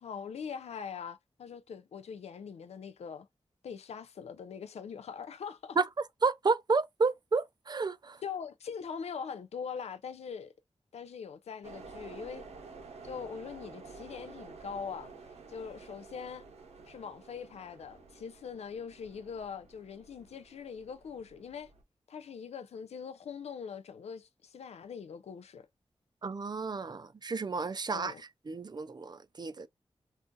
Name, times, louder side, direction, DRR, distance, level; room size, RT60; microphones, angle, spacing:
voice 1, 0.0-3.3 3.6-5.8 8.2-10.5 10.9-12.4 13.0-15.1 15.5-16.4 16.9-21.7 22.1-25.7 27.9-28.2, left 6 dB, 85° left, 0.4 m, -42 dB
voice 2, 6.2-8.2 26.2-28.1 28.5-29.7, right 4 dB, 40° right, 0.4 m, -31 dB
sound 1, 11.6-21.8, right 4 dB, 90° right, 0.8 m, -51 dB
2.4 x 2.4 x 3.7 m
cardioid pair, 50°, 11 cm